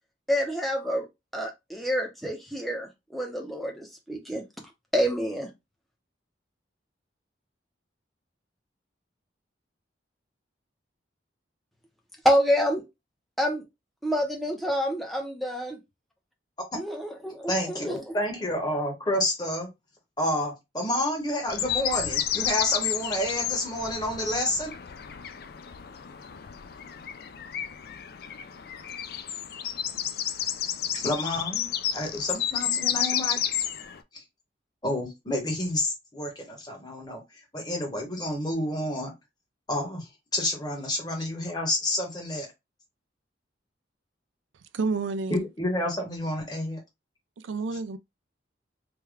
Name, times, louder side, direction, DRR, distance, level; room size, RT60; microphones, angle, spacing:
voice 1, 0.3-1.1 1.3-4.4 4.9-5.5 12.2-12.9 13.4-13.6 14.0-15.8 16.8-18.1, equal, ahead, 0.6 m, -27 dB
voice 2, 17.5-19.7 20.2-24.7 30.9-33.4 34.1-34.2 34.8-39.1 39.7-42.5 45.3-46.8, left 1 dB, 20° left, 1.1 m, -29 dB
sound 1, 21.5-34.0, left 10 dB, 50° left, 0.3 m, -31 dB
voice 3, 44.7-45.5 47.4-48.0, right 4 dB, 80° right, 0.4 m, -29 dB
3.4 x 2.2 x 3.4 m
head